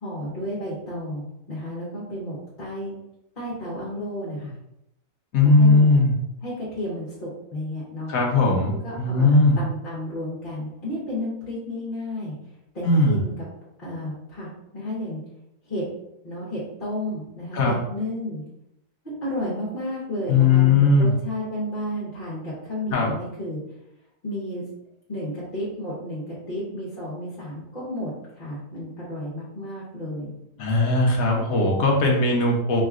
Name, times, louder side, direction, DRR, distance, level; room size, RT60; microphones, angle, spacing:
voice 1, 0.0-2.9 3.4-4.5 5.4-6.0 6.4-8.1 8.8-12.3 12.7-13.4 13.8-15.2 15.6-15.8 16.2-18.4 19.0-23.6 24.2-24.6 25.1-30.3, left 1 dB, 35° left, -8 dB, 1.2 m, -32 dB
voice 2, 5.3-6.1 8.1-9.6 12.8-13.2 17.5-17.8 20.3-21.1 22.9-23.1 30.6-32.8, left 3 dB, 60° left, -1 dB, 1.1 m, -18 dB
4.7 x 3.1 x 2.4 m, 0.84 s
omnidirectional pair, 1.8 m